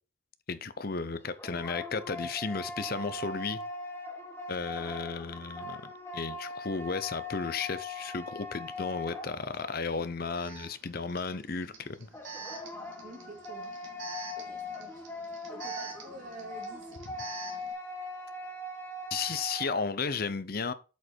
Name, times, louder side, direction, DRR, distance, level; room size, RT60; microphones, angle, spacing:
voice 1, 0.5-3.6 4.5-12.1 19.1-20.7, left 4 dB, 50° left, 0.7 m, -34 dB
sound 1, 1.1-9.8 12.1-19.9, left 2 dB, 10° left, 1.5 m, -41 dB
Alarm, 9.5-9.6 10.3-17.7, right 5 dB, 70° right, 2.3 m, -45 dB
voice 2, 13.0-13.7 14.3-15.0 15.5-17.0, right 1 dB, 40° right, 2.1 m, -47 dB
8.0 x 5.2 x 4.5 m
head